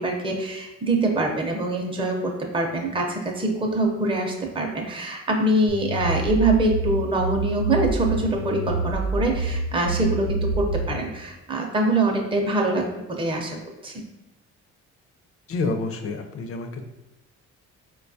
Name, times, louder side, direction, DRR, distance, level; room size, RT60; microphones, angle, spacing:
voice 1, 0.0-13.6 13.8-13.9, right 2 dB, 15° right, 1 dB, 0.6 m, -24 dB
sound 1, 5.7-11.0, right 2 dB, 90° left, 0.7 m, -27 dB
voice 2, 15.5-16.8, left 3 dB, 50° left, 6 dB, 0.5 m, -28 dB
4.1 x 2.3 x 2.7 m, 1.0 s
cardioid pair, 90°, 30 cm